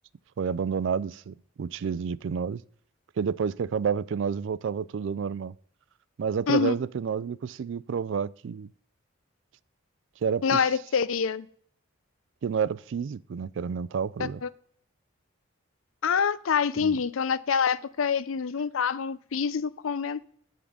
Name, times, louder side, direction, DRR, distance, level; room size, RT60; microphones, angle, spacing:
voice 1, 0.4-2.6 3.2-5.5 6.2-8.7 10.2-10.6 12.4-14.4 16.8-17.0, right 6 dB, 65° right, 0.3 m, -29 dB
voice 2, 10.4-11.5 14.2-14.5 16.0-20.3, left 6 dB, 85° left, 0.5 m, -26 dB
10.0 x 3.8 x 7.2 m
head